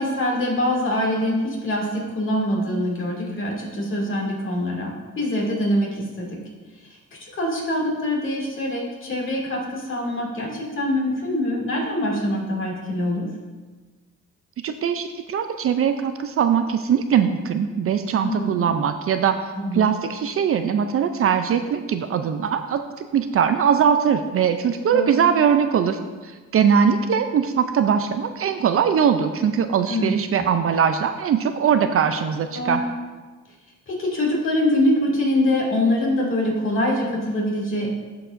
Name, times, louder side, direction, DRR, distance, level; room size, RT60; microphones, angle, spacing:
voice 1, 0.0-6.4 7.2-13.3 18.2-18.6 19.6-19.9 24.9-25.2 29.9-30.4 32.5-32.9 33.9-37.9, left 1 dB, 40° left, -3 dB, 2.4 m, -24 dB
voice 2, 14.6-19.4 19.7-22.8 23.1-32.8, right 7 dB, 50° right, 8 dB, 0.5 m, -21 dB
12.5 x 4.8 x 2.6 m, 1.3 s
cardioid pair, 90°, 30 cm